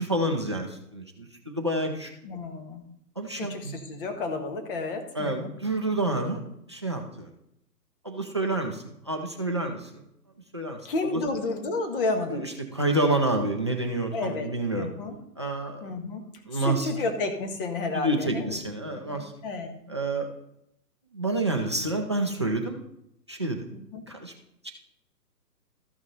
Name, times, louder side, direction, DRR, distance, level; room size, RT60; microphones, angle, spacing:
voice 1, 0.0-2.1 3.2-3.8 5.2-6.4 6.7-7.3 8.0-10.0 10.5-10.8 11.1-11.2 12.3-14.9 15.4-15.9 16.5-16.9 17.9-19.3 19.9-20.3 21.1-22.8 23.3-23.7 24.1-24.3 24.6-24.7, right 2 dB, 20° right, 4 dB, 0.4 m, -28 dB
voice 2, 2.2-2.8 3.3-5.5 10.8-12.4 14.1-14.5 14.8-15.1 15.8-16.2 16.5-18.6 19.1-19.7 23.7-24.0, left 3 dB, 35° left, 5 dB, 1.6 m, -31 dB
13.0 x 6.1 x 4.1 m, 0.79 s
hypercardioid pair, 145°, 49 cm